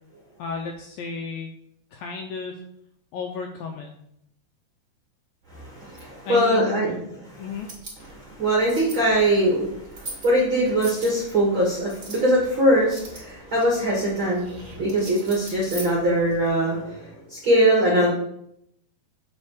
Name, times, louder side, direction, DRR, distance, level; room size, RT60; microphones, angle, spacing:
voice 1, 0.4-1.5 1.9-2.6 3.1-3.9 6.3-7.7, left 5 dB, 80° left, 3 dB, 2.1 m, -33 dB
voice 2, 5.5-6.9 8.1-18.1, right 1 dB, 55° right, -4 dB, 1.4 m, -22 dB
sound 1, 7.5-16.5, right 3 dB, 35° right, 1.3 m, -42 dB
7.6 x 4.2 x 6.4 m, 0.75 s
omnidirectional pair, 4.8 m